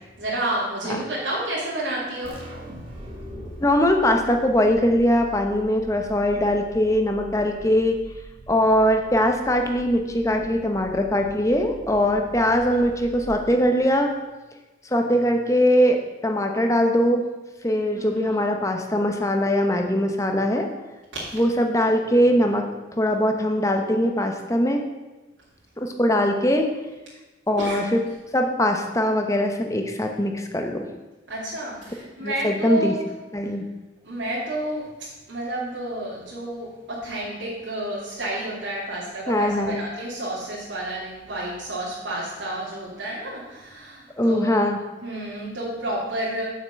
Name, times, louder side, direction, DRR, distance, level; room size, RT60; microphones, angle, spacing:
voice 1, 0.2-2.4 17.9-18.4 21.1-21.4 27.6-27.8 31.3-33.0 34.0-34.9 35.3-44.7 45.0-46.4, right 1 dB, 80° right, -8 dB, 2.8 m, -30 dB
sound 1, 2.2-13.7, right 1 dB, 30° right, 2.0 m, -42 dB
voice 2, 3.6-8.0 8.5-14.1 14.8-16.0 16.2-17.2 17.6-20.7 21.3-24.8 25.8-26.7 27.5-28.0 28.3-30.9 32.2-32.9 33.3-33.6 39.3-39.8 44.2-44.8, equal, 15° left, 4 dB, 1.0 m, -21 dB
7.3 x 6.0 x 7.6 m, 1.1 s
head